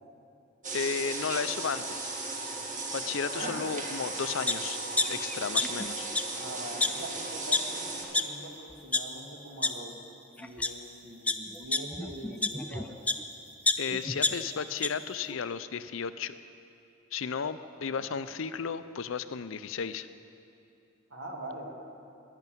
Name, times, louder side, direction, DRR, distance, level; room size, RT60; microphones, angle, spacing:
sound 1, 0.6-8.0, right 3 dB, 40° right, 1.8 m, -36 dB
voice 1, 0.7-2.1 2.9-4.8 5.1-6.1 13.8-16.3 17.1-20.1, left 6 dB, 65° left, 13 dB, 0.5 m, -34 dB
sound 2, 4.5-4.6 5.0-5.9 6.1-6.2 6.8-6.9 7.5-7.6 8.1-8.2 8.7-9.0 9.6-9.7 10.4-10.7 11.3-13.2 13.7-14.9 15.3-15.4, left 3 dB, 5° left, 0.4 m, -27 dB
voice 2, 6.4-10.0 10.4-13.0 17.6-18.2 21.1-21.7, right 1 dB, 70° right, 1 dB, 2.1 m, -43 dB
11.0 x 10.5 x 9.2 m, 2.6 s
head